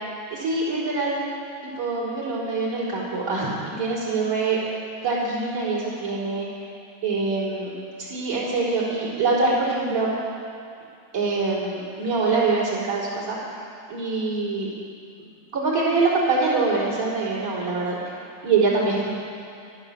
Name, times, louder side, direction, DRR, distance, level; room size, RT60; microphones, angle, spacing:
voice 1, 0.3-1.2 1.6-6.5 7.0-7.7 8.0-10.1 11.1-13.4 13.9-14.7 15.5-18.0 18.4-19.1, right 3 dB, 25° right, -8 dB, 4.0 m, -24 dB
12.5 x 12.5 x 7.1 m, 2.4 s
omnidirectional pair, 3.9 m